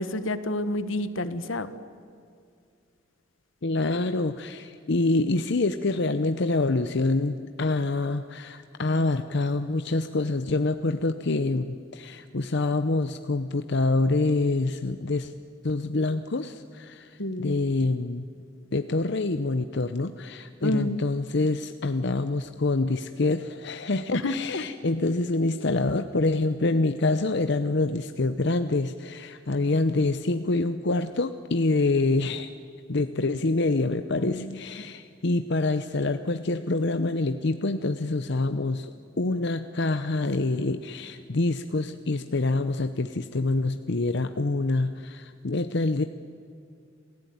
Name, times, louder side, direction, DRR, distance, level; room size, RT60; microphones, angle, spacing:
voice 1, 0.0-1.7 17.2-17.5 20.6-21.0 24.1-24.6 34.2-34.6, left 1 dB, 80° left, 12 dB, 1.4 m, -29 dB
voice 2, 3.6-15.3 15.6-18.2 18.7-32.5 32.9-38.9 39.2-46.0, left 2 dB, 60° left, 9 dB, 0.8 m, -26 dB
27.5 x 16.5 x 9.5 m, 2.4 s
head